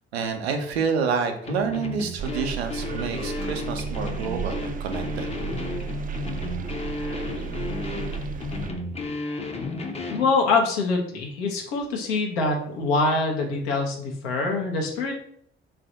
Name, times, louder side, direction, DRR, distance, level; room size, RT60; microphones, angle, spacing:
voice 1, 0.1-5.3, right 5 dB, 85° right, 5 dB, 0.5 m, -28 dB
sound 1, 1.4-10.3, left 3 dB, 20° left, 0.6 m, -33 dB
sound 2, 2.2-8.7, right 7 dB, 30° right, 0.4 m, -34 dB
voice 2, 10.1-15.2, left 3 dB, 75° left, 1 dB, 0.8 m, -24 dB
3.3 x 2.5 x 3.8 m, 0.67 s
figure-of-eight pair, 50°, 31 cm